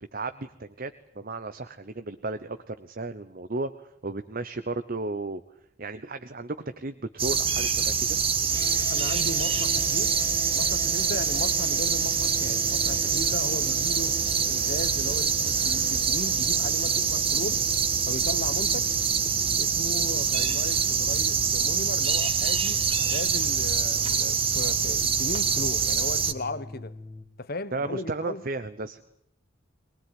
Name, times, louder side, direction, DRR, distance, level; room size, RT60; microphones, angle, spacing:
voice 1, 0.1-5.4 5.8-8.2 27.7-29.0, right 3 dB, 45° right, 0.9 m, -34 dB
sound 1, 7.2-26.3, right 6 dB, 25° right, 1.3 m, -25 dB
sound 2, 8.5-27.3, left 1 dB, 15° left, 1.4 m, -42 dB
voice 2, 8.9-10.2 10.5-14.2 14.5-17.6 18.1-19.0 19.6-22.8 23.1-26.9 27.4-28.4, left 2 dB, 45° left, 1.2 m, -36 dB
23.0 x 20.0 x 9.5 m
head